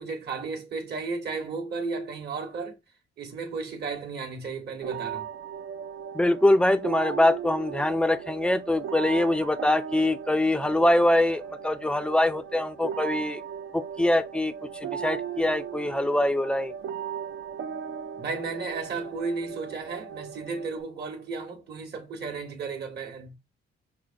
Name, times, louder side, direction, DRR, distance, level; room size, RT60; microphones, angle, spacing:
voice 1, 0.0-2.8 3.2-5.3 18.2-23.4, right 4 dB, 55° right, 1.1 m, -34 dB
sound 1, 4.8-20.8, right 8 dB, 85° right, 0.7 m, -37 dB
voice 2, 6.1-13.4 13.7-14.5 14.8-16.7, left 1 dB, 5° left, 0.4 m, -23 dB
5.9 x 2.1 x 2.5 m
cardioid pair, 90°, 20 cm